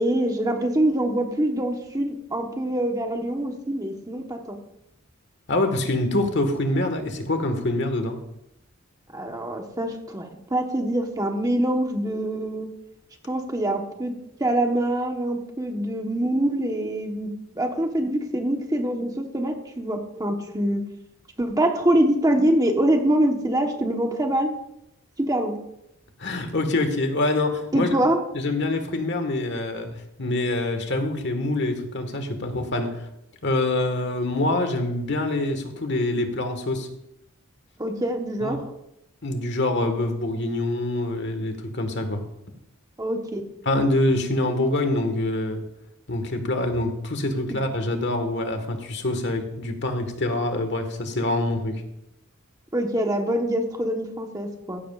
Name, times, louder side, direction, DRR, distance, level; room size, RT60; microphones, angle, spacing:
voice 1, 0.0-4.6 9.1-12.7 13.2-14.1 14.4-20.8 21.4-24.5 25.2-25.6 27.7-28.2 37.8-38.6 43.0-43.4 52.7-54.8, right 1 dB, 20° right, 3 dB, 1.1 m, -24 dB
voice 2, 5.5-8.2 26.2-27.9 28.3-29.9 30.2-33.0 33.4-36.9 38.4-38.6 39.2-42.2 43.6-45.6 46.1-51.8, left 2 dB, 60° left, 6 dB, 1.6 m, -25 dB
15.5 x 13.0 x 2.5 m, 0.83 s
head